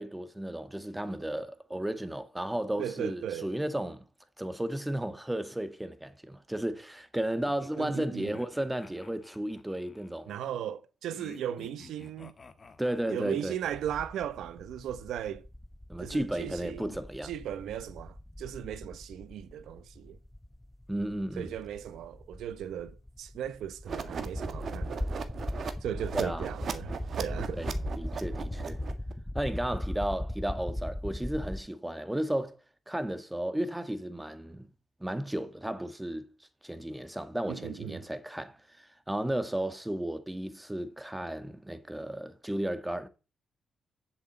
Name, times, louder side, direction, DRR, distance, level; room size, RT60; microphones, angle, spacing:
voice 1, 0.0-4.1 4.4-10.3 12.8-13.5 15.9-17.3 20.9-21.5 26.1-26.5 27.6-27.7 28.0-28.8 29.3-32.6 32.9-34.7 35.0-36.3 36.6-43.1, right 1 dB, 10° right, 1.8 m, -34 dB
voice 2, 2.8-3.5 7.8-8.4 10.3-12.3 13.1-15.5 16.0-17.0 17.2-20.2 21.4-25.1 25.8-27.6 37.5-38.0, right 10 dB, 85° right, 1.0 m, -37 dB
sound 1, 7.5-10.2 11.1-13.7, left 4 dB, 35° left, 1.6 m, -53 dB
sound 2, 13.7-31.6, left 1 dB, 10° left, 1.0 m, -39 dB
sound 3, 23.9-29.1, right 6 dB, 60° right, 1.7 m, -38 dB
7.7 x 7.4 x 7.9 m
cardioid pair, 75°, 0 cm